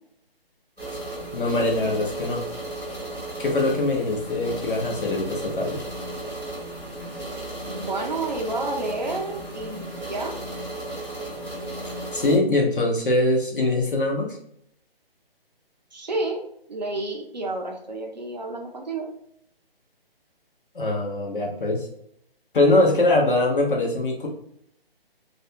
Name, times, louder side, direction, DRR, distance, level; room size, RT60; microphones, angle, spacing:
sound 1, 0.8-12.4, right 1 dB, 5° left, 0.8 m, -34 dB
voice 1, 1.3-2.4 3.4-5.8 12.1-14.4 20.7-21.9 22.5-24.3, left 2 dB, 55° left, 0 dB, 0.9 m, -22 dB
voice 2, 7.7-10.4 15.9-16.4 16.7-19.1, right 2 dB, 45° right, 2 dB, 0.5 m, -30 dB
2.4 x 2.2 x 2.7 m, 0.70 s
hypercardioid pair, 170°, 30 cm